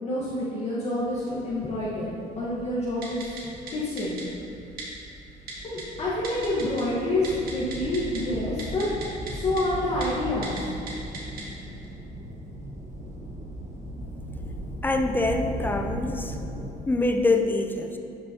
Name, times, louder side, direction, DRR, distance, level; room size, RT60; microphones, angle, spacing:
voice 1, 0.0-2.1 2.4-4.1 5.6-8.9 9.3-10.6, left 1 dB, 40° left, -8 dB, 1.3 m, -28 dB
sound 1, 1.1-16.7, equal, 45° right, 1.2 m, -38 dB
Typing, 3.0-3.4 3.7-3.8 4.0-4.2 4.8-4.9 5.5-5.8 6.2-6.8 7.1-8.2 8.6-9.3 9.6-9.7 10.0-10.1 10.4-10.6 10.9-11.4 11.8-11.9, right 4 dB, 60° right, 1.9 m, -37 dB
voice 2, 14.8-16.4 16.9-18.0, left 2 dB, 10° left, 4 dB, 0.5 m, -25 dB
12.0 x 5.4 x 2.8 m, 2.6 s
cardioid pair, 110°, 17 cm